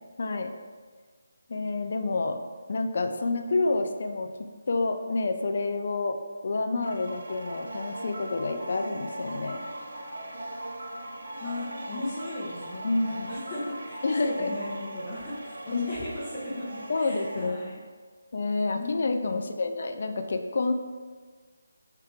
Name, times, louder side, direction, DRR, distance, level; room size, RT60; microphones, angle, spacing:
voice 1, 0.2-0.5 1.5-2.4 2.7-4.3 4.7-6.2 6.4-9.6 12.8-13.3 14.0-14.5 15.7-15.8 16.9-17.6 18.3-20.7, left 3 dB, 55° left, 6 dB, 0.4 m, -28 dB
dead end street, 6.8-17.5, right 1 dB, 60° right, 0.6 m, -39 dB
voice 2, 11.4-17.8 18.7-19.5, left 1 dB, 25° left, -7 dB, 0.9 m, -37 dB
4.9 x 2.8 x 3.5 m, 1.5 s
figure-of-eight pair, 155°, 0 cm